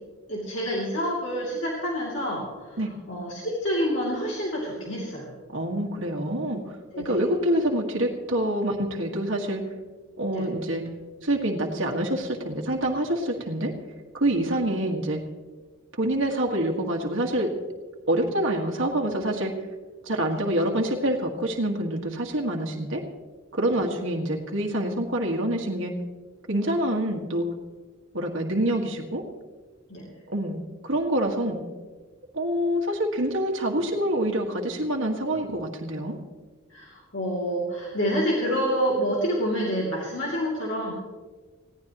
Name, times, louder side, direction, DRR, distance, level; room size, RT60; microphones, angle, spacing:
voice 1, 0.3-2.8 3.1-5.3 6.9-7.2 10.3-10.5 14.4-14.5 20.3-20.4 23.7-23.8 29.9-30.1 36.7-40.9, equal, 65° left, -4 dB, 2.8 m, -28 dB
voice 2, 5.5-6.8 7.0-9.6 10.2-10.8 11.2-13.7 14.1-15.2 15.9-17.5 18.1-19.5 20.0-23.0 23.5-25.9 26.5-27.5 28.1-29.2 30.3-30.6 30.8-31.6 32.3-36.2, right 1 dB, 70° right, 0 dB, 1.7 m, -26 dB
20.0 x 16.5 x 3.0 m, 1.4 s
head